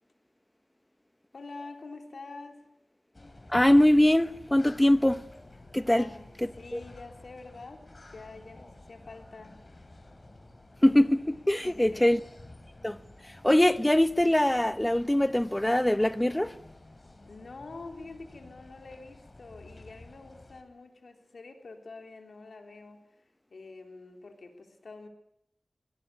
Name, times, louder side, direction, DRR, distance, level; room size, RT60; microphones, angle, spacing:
voice 1, 1.3-2.6 5.9-7.8 8.1-9.6 11.6-12.1 17.3-23.0 23.5-25.1, left 3 dB, 85° left, 3.6 m, -46 dB
sound 1, 3.1-20.6, left 2 dB, 40° left, 4.2 m, -51 dB
voice 2, 3.5-5.2 5.7-6.1 6.7-6.8 10.8-12.2 12.8-13.0 13.4-16.6, left 1 dB, 15° left, 1.0 m, -22 dB
23.0 x 18.0 x 9.7 m
wide cardioid pair, 55°, 0 cm